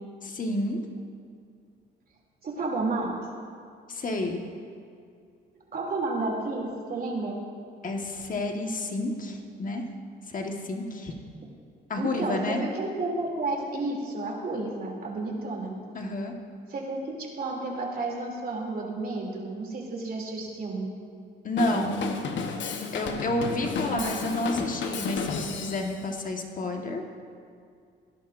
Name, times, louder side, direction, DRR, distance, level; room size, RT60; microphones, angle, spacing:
voice 1, 0.2-0.8 3.9-4.4 7.8-9.8 10.3-11.1 11.9-12.6 15.9-16.3 21.4-22.2 22.9-27.0, left 2 dB, 40° left, 3 dB, 1.4 m, -30 dB
voice 2, 2.4-3.1 5.7-7.4 12.0-15.7 16.7-20.9 23.9-24.1, right 2 dB, 50° right, -1 dB, 2.9 m, -31 dB
Drum kit / Drum, 21.6-26.0, left 5 dB, 70° left, 1.0 m, -32 dB
18.0 x 11.0 x 2.6 m, 2.3 s
cardioid pair, 90°, 20 cm